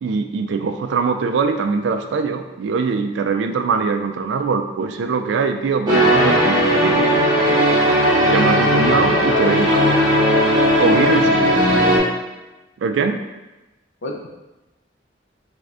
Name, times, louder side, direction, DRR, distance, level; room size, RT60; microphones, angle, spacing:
voice 1, 0.0-7.0 8.3-9.8 10.8-11.6 12.8-13.2, right 5 dB, 70° right, 6 dB, 0.3 m, -22 dB
sound 1, 5.9-12.0, equal, 20° right, 0.9 m, -16 dB
voice 2, 9.1-10.0 10.6-10.7 11.0-11.2 11.5-11.8 14.0-14.3, left 2 dB, 70° left, 1 dB, 0.5 m, -29 dB
3.5 x 2.5 x 3.3 m, 1.0 s
head